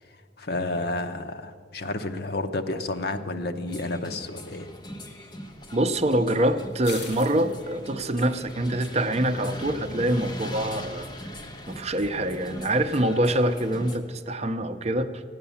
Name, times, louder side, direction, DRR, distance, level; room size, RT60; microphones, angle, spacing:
voice 1, 0.4-4.7, left 2 dB, 65° left, 8 dB, 0.9 m, -30 dB
sound 1, 3.7-14.0, equal, 25° left, 1.2 m, -40 dB
sound 2, 5.5-13.0, left 2 dB, 90° left, 2.7 m, -47 dB
voice 2, 5.7-11.1 11.7-15.2, right 1 dB, 40° right, 8 dB, 0.7 m, -25 dB
15.0 x 9.7 x 7.1 m, 2.2 s
head